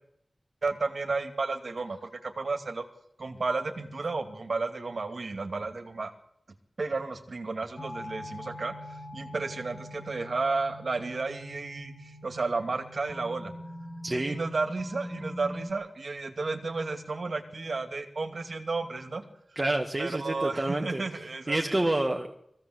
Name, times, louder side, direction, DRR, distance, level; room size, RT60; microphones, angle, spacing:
voice 1, 0.6-2.8 3.2-6.1 6.8-13.5 14.1-19.2 20.0-21.8, right 3 dB, 70° right, 7 dB, 2.3 m, -32 dB
sound 1, 7.8-15.7, left 1 dB, 40° left, 6.5 m, -43 dB
voice 2, 14.0-14.4 19.6-21.0 21.5-22.3, right 2 dB, 35° right, 3 dB, 1.9 m, -28 dB
21.5 x 16.0 x 8.0 m, 0.76 s
wide cardioid pair, 55°, 0 cm